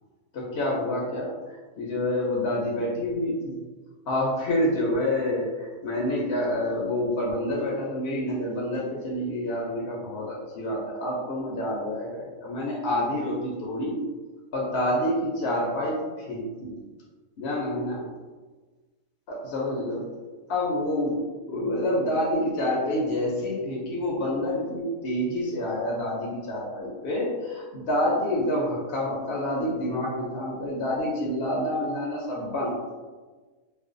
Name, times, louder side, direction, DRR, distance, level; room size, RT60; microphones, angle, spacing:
voice 1, 0.3-3.6 4.1-14.0 14.5-16.7 17.4-18.0 19.3-20.1 20.5-21.2 21.5-32.8, left 1 dB, 65° left, -4 dB, 0.7 m, -28 dB
2.5 x 2.1 x 2.4 m, 1.3 s
omnidirectional pair, 1.4 m